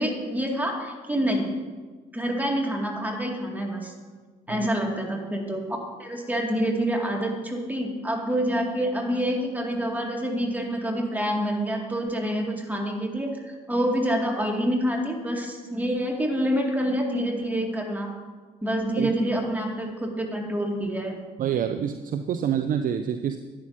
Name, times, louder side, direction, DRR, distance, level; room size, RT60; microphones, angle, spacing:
voice 1, 0.0-1.5 2.1-3.9 4.5-5.6 6.0-18.1 18.6-21.2, equal, 10° right, 0 dB, 2.2 m, -27 dB
voice 2, 21.4-23.4, right 9 dB, 40° right, 7 dB, 0.5 m, -27 dB
11.0 x 9.6 x 2.8 m, 1.4 s
figure-of-eight pair, 45°, 21 cm